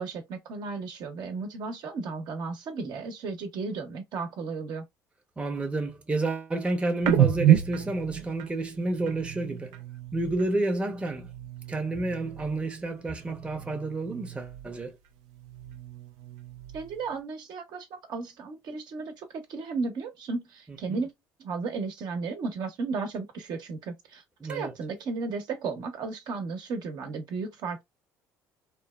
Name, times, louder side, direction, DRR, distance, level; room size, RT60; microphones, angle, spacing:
voice 1, 0.0-4.8 16.7-21.1 21.4-27.8, right 4 dB, 60° right, 0.9 m, -34 dB
voice 2, 5.4-9.8 10.1-11.3 11.7-15.0 20.9-21.0 24.4-24.7, right 2 dB, 15° right, 0.7 m, -30 dB
sound 1, 7.0-10.6 10.9-12.7 13.0-14.9 15.2-17.1, right 12 dB, 85° right, 0.5 m, -30 dB
3.0 x 2.1 x 2.3 m
supercardioid pair, 80°, 8 cm